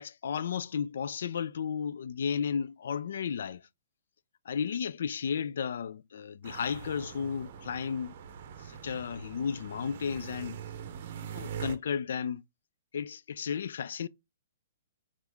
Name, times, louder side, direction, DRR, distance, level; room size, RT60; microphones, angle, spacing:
voice 1, 0.0-3.6 4.5-8.1 8.6-10.6 11.1-12.4 12.9-14.1, left 7 dB, 70° left, 0.3 m, -33 dB
sound 1, 6.4-11.8, right 8 dB, 50° right, 0.7 m, -43 dB
6.0 x 2.4 x 3.4 m
hypercardioid pair, 155°, 0 cm